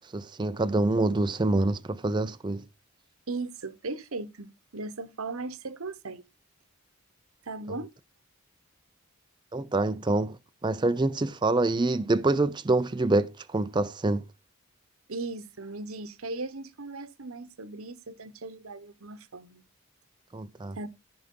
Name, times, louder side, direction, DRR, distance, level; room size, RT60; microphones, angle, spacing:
voice 1, 0.1-2.6 9.5-10.4 10.6-14.2 20.3-20.9, right 2 dB, 20° right, 0.4 m, -26 dB
voice 2, 3.3-6.2 7.5-7.9 15.1-19.6 20.8-20.9, right 3 dB, 70° right, 1.0 m, -37 dB
14.5 x 4.8 x 3.7 m
head